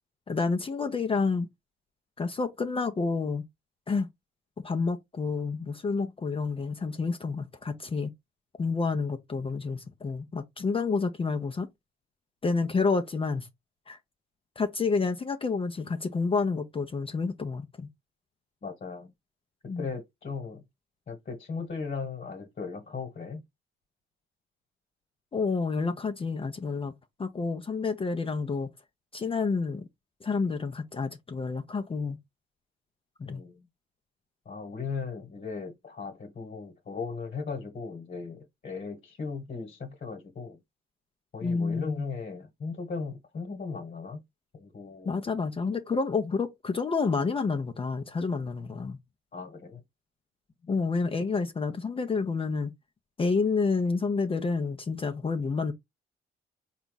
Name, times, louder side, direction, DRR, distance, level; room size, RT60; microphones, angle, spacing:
voice 1, 0.3-1.5 2.2-3.4 3.9-4.1 4.6-8.1 8.6-11.7 12.4-13.5 13.9-14.0 14.6-17.9 19.7-19.9 25.3-26.9 27.2-28.7 29.1-29.9 30.2-32.2 33.3-33.4 41.4-42.0 45.1-49.0 50.7-52.7 53.2-55.7, left 4 dB, 30° left, 0.6 m, -29 dB
voice 2, 18.6-19.1 19.8-20.6 21.1-23.4 33.2-33.6 34.4-40.6 41.3-44.2 44.5-45.2 49.3-49.8, left 4 dB, 45° left, 1.3 m, -37 dB
4.0 x 2.4 x 3.9 m
cardioid pair, 90°, 20 cm